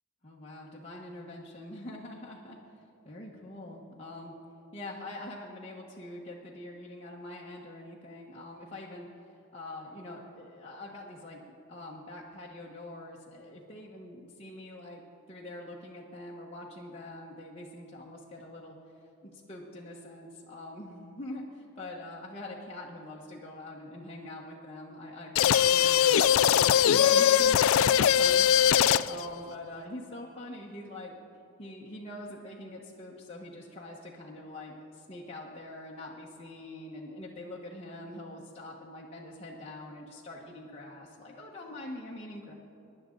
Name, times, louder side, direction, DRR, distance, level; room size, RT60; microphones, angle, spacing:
voice 1, 0.2-2.6 3.0-4.3 4.7-9.1 9.5-18.8 19.2-31.1 31.6-42.5, left 1 dB, 30° left, -5 dB, 1.2 m, -44 dB
sound 1, 25.4-29.3, left 9 dB, 75° left, 0.3 m, -21 dB
23.5 x 11.0 x 3.9 m, 2.8 s
head